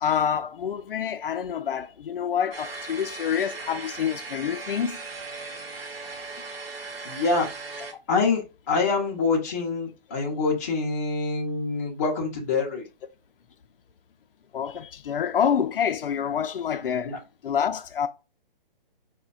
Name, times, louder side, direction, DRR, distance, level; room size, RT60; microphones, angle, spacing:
voice 1, 0.0-5.0 14.5-17.1 17.4-18.1, left 8 dB, 70° left, 0.4 m, -27 dB
sound 1, 2.5-7.9, right 3 dB, 80° right, 1.0 m, -38 dB
voice 2, 7.0-7.5 8.1-8.4 8.7-12.8 16.8-17.2, left 4 dB, 15° left, 0.5 m, -25 dB
4.9 x 2.1 x 2.3 m
hypercardioid pair, 155°, 29 cm